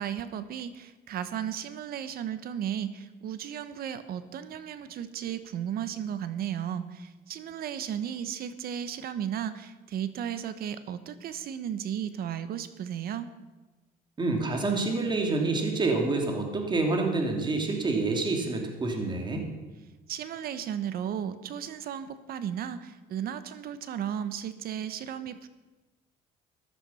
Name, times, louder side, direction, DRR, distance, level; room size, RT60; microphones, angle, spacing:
voice 1, 0.0-13.3 20.1-25.5, right 9 dB, 65° right, 13 dB, 1.1 m, -35 dB
voice 2, 14.2-19.5, right 3 dB, 25° right, 2 dB, 2.8 m, -27 dB
14.5 x 11.5 x 5.7 m, 1.2 s
cardioid pair, 110°, 17 cm